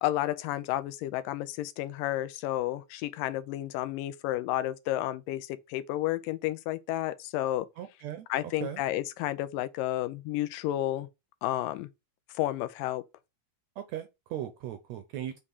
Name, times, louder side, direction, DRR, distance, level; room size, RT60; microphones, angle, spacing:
voice 1, 0.0-7.7 8.3-11.1 11.4-11.9 12.3-13.0, left 14 dB, 85° left, 2.3 m, -31 dB
voice 2, 7.8-8.3 8.6-8.8 13.8-15.4, right 11 dB, 75° right, 1.7 m, -38 dB
6.6 x 3.7 x 5.5 m
omnidirectional pair, 3.9 m